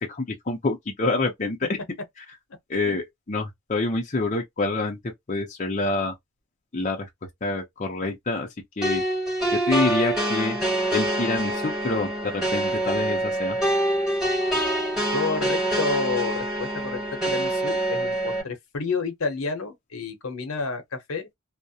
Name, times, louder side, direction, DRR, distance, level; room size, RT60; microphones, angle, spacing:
voice 1, 0.1-1.6 2.7-5.0 5.3-6.1 6.7-7.1 7.4-8.5 8.8-9.0 9.5-10.6 10.9-13.6, left 2 dB, 35° left, 0.5 m, -26 dB
sound 1, 8.8-18.4, right 1 dB, 5° right, 1.3 m, -25 dB
voice 2, 15.1-21.3, left 4 dB, 70° left, 0.8 m, -30 dB
2.4 x 2.1 x 2.7 m
head